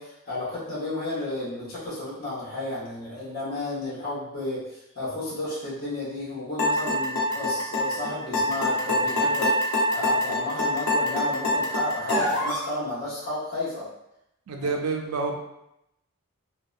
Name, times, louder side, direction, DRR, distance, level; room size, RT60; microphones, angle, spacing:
voice 1, 0.0-13.9 14.6-14.8, left 2 dB, 40° left, -9 dB, 0.9 m, -32 dB
sound 1, 6.6-12.7, left 1 dB, 70° left, 0.6 m, -24 dB
voice 2, 14.5-15.3, right 4 dB, 80° right, 2 dB, 0.4 m, -28 dB
2.6 x 2.2 x 2.3 m, 0.83 s
head